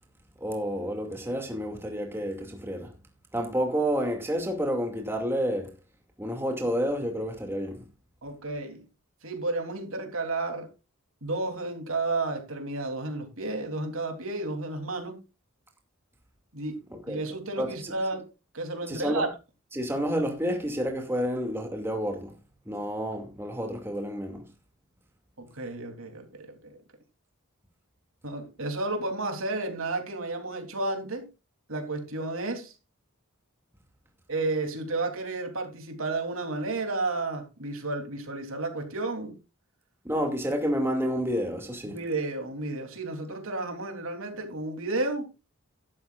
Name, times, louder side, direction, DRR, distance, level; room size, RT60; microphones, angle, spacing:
voice 1, 0.4-2.9 3.3-5.7 6.2-7.8 16.9-17.2 17.6-17.9 18.9-19.3 19.7-22.3 22.7-24.4 40.0-42.0, equal, 10° right, 2.4 m, -29 dB
voice 2, 8.2-8.8 9.2-10.7 11.2-15.2 16.5-16.7 17.1-18.3 18.5-19.3 25.4-26.8 28.2-31.3 31.7-32.7 34.3-39.4 41.8-45.3, right 2 dB, 70° right, 3.3 m, -32 dB
13.5 x 12.0 x 2.5 m
head